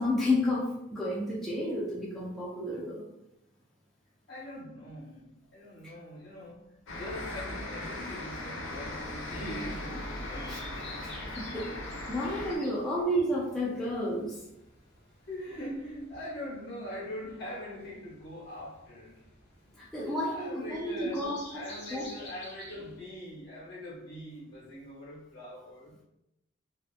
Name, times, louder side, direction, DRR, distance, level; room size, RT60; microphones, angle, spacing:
voice 1, 0.0-3.0 10.5-10.6 11.0-14.4 19.8-21.6 21.9-22.0, left 1 dB, ahead, -7 dB, 0.3 m, -31 dB
voice 2, 4.3-6.6 6.9-10.5 15.3-19.2 20.0-21.3 21.5-26.0, left 1 dB, 55° left, -5 dB, 1.0 m, -42 dB
sound 1, 6.9-12.6, left 1 dB, 80° left, 0.6 m, -38 dB
sound 2, 9.0-23.0, left 1 dB, 30° left, 1.0 m, -52 dB
2.7 x 2.1 x 2.4 m, 0.87 s
head